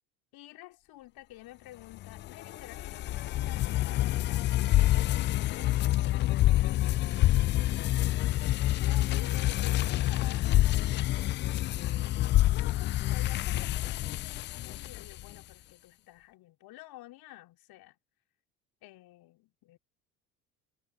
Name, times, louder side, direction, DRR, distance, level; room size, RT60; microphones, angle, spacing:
voice 1, 0.3-4.5 5.5-7.1 7.5-7.6 8.8-11.2 12.5-18.0 18.8-19.8, left 16 dB, 55° left, 3.4 m, -51 dB
sound 1, 2.0-15.4, left 15 dB, 25° left, 0.4 m, -27 dB
figure-of-eight pair, 65°, 44 cm